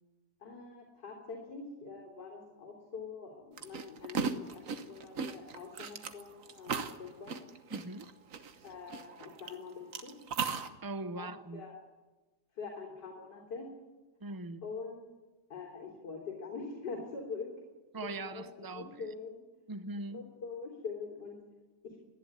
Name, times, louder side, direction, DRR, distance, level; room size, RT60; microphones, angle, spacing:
voice 1, 0.4-7.4 8.6-10.1 11.2-11.8 12.6-13.7 14.6-15.0 15.5-17.5 18.0-19.4 20.1-21.4 21.8-21.9, left 4 dB, 75° left, 4.1 m, -44 dB
sound 1, 3.6-9.5 9.9-10.7, right 6 dB, 50° right, 1.4 m, -36 dB
voice 2, 7.7-8.1 10.8-11.6 14.2-14.6 17.9-19.1 19.7-20.2, right 2 dB, 30° right, 0.4 m, -41 dB
28.0 x 11.5 x 9.7 m
omnidirectional pair, 1.9 m